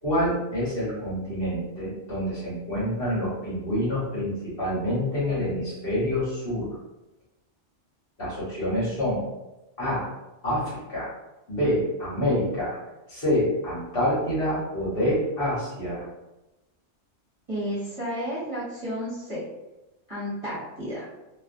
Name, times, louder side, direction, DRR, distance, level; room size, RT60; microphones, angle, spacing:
voice 1, 0.0-6.7 8.2-9.3 9.8-10.1 10.4-11.1 11.5-12.8 13.1-16.0, equal, 55° left, -8 dB, 1.2 m, -27 dB
voice 2, 17.5-19.4 20.1-21.1, equal, 30° right, -10 dB, 1.0 m, -32 dB
2.4 x 2.3 x 2.5 m, 1.0 s
omnidirectional pair, 1.2 m